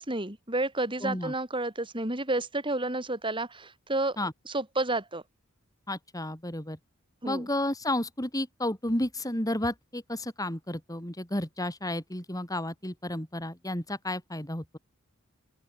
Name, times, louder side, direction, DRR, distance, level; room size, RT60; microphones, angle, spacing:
voice 1, 0.0-4.2 4.4-5.2 7.2-7.4, right 2 dB, 25° right, 6.8 m, -30 dB
voice 2, 1.0-1.3 4.2-4.3 5.9-6.8 7.2-14.8, left 1 dB, 15° left, 4.4 m, -32 dB
open air
head